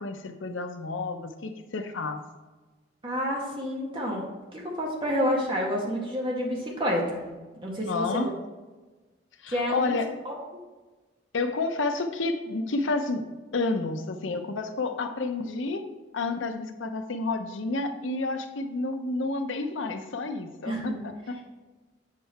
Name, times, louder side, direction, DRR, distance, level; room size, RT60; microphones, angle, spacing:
voice 1, 0.0-2.2 7.8-8.3 9.4-10.2 11.3-13.2 13.5-15.8 16.1-21.4, left 3 dB, 90° left, 7 dB, 0.7 m, -30 dB
voice 2, 3.0-4.3 4.5-7.2 7.6-8.3 9.5-10.0 10.2-10.4 20.6-21.0, equal, 25° right, -2 dB, 1.6 m, -29 dB
7.7 x 5.6 x 4.3 m, 1.2 s
head